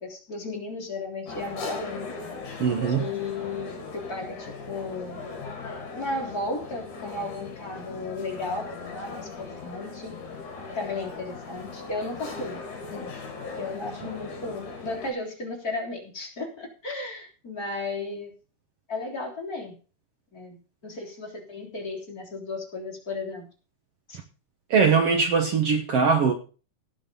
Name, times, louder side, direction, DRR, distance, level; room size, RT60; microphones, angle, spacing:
voice 1, 0.0-2.1 2.9-5.2 5.9-10.1 10.7-12.6 12.9-13.1 13.6-18.3 18.9-19.8 20.3-20.6 20.8-23.4 24.1-24.2, left 3 dB, 25° left, 3.7 m, -34 dB
sound 1, 1.3-15.1, left 4 dB, 50° left, 4.4 m, -39 dB
voice 2, 2.6-3.1 24.7-26.3, right 5 dB, 85° right, 1.3 m, -21 dB
17.5 x 6.5 x 5.3 m
omnidirectional pair, 4.6 m